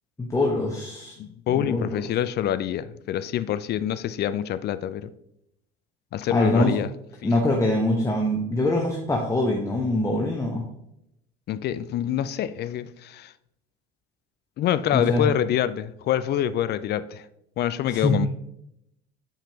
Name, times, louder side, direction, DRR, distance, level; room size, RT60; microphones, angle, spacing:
voice 1, 0.2-1.2 1.5-1.9 6.3-6.7 7.2-10.6 14.9-15.3 17.9-18.1, left 2 dB, 10° left, 0 dB, 1.0 m, -23 dB
voice 2, 1.2-5.1 6.1-6.9 7.2-7.3 11.5-13.3 14.6-17.2 17.6-18.3, left 11 dB, 35° left, 15 dB, 0.4 m, -26 dB
7.1 x 5.7 x 2.9 m, 0.79 s
figure-of-eight pair, 65°, 31 cm